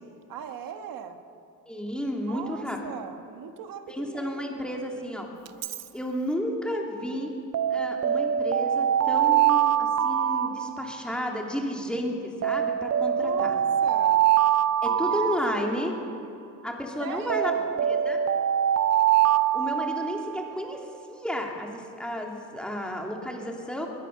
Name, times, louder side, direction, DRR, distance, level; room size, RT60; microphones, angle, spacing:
voice 1, 0.3-1.2 2.3-4.8 13.2-14.3 14.9-15.2 15.5-16.2 17.0-17.7, right 7 dB, 80° right, 7 dB, 1.7 m, -39 dB
voice 2, 1.7-2.8 3.9-5.3 5.9-7.3 7.7-13.5 14.8-15.9 16.6-18.2 19.5-23.9, left 1 dB, 5° left, 0 dB, 3.0 m, -32 dB
Alarm, 5.5-5.8 7.5-11.3 12.4-16.2 17.3-20.5, right 10 dB, 50° right, 0.7 m, -24 dB
22.0 x 20.0 x 6.8 m, 2.7 s
cardioid pair, 130°, 33 cm